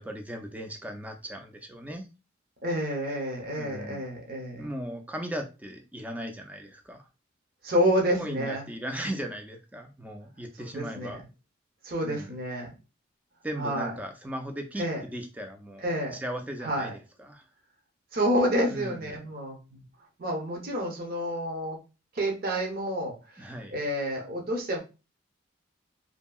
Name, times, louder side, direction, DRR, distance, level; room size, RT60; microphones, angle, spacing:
voice 1, 0.0-2.1 3.6-4.0 4.6-7.1 8.2-11.2 12.0-12.4 13.4-17.4 18.7-19.0 23.4-23.7, right 1 dB, 10° right, 4 dB, 0.3 m, -37 dB
voice 2, 2.6-4.7 7.6-8.7 10.6-11.2 11.8-12.7 13.6-13.9 14.8-15.0 15.8-16.2 16.6-16.9 18.1-19.8 20.2-21.8 22.1-24.8, equal, 50° right, 0 dB, 0.7 m, -29 dB
2.7 x 2.7 x 2.3 m, 0.30 s
head